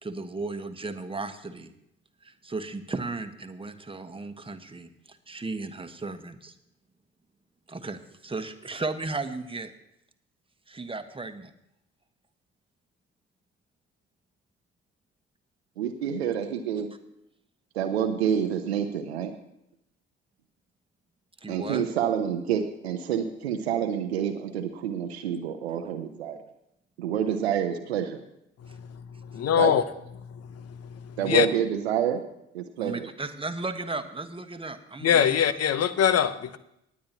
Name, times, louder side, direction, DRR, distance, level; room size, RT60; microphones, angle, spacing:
voice 1, 0.0-1.7 2.2-6.5 7.7-9.7 10.7-11.5 21.4-21.8 32.8-35.4, right 3 dB, 15° right, 1.3 m, -35 dB
voice 2, 15.8-16.9 17.7-19.3 21.5-26.4 27.0-28.2 29.6-29.7 31.2-32.2 32.5-33.1, right 9 dB, 90° right, 0.7 m, -28 dB
voice 3, 29.3-29.8 31.3-31.5 35.0-36.6, left 8 dB, 50° left, 0.9 m, -22 dB
19.0 x 9.5 x 2.9 m
hypercardioid pair, 45°, 31 cm